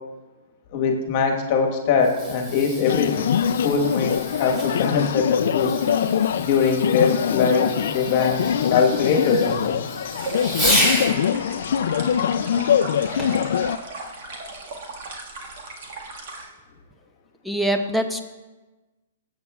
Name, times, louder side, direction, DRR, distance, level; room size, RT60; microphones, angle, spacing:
voice 1, 0.7-3.3 3.6-5.8 6.3-10.0, left 5 dB, 40° left, 1 dB, 1.3 m, -22 dB
Fireworks, 1.8-11.2 13.2-13.5 14.2-14.3, equal, 20° right, 2.8 m, -30 dB
sound 1, 2.9-13.8, left 8 dB, 65° left, 0.3 m, -23 dB
sound 2, 10.1-16.4, right 3 dB, 55° right, 1.7 m, -37 dB
voice 2, 17.4-18.2, right 1 dB, ahead, 6 dB, 0.7 m, -23 dB
17.0 x 8.2 x 2.4 m, 1.2 s
hypercardioid pair, 155°, 0 cm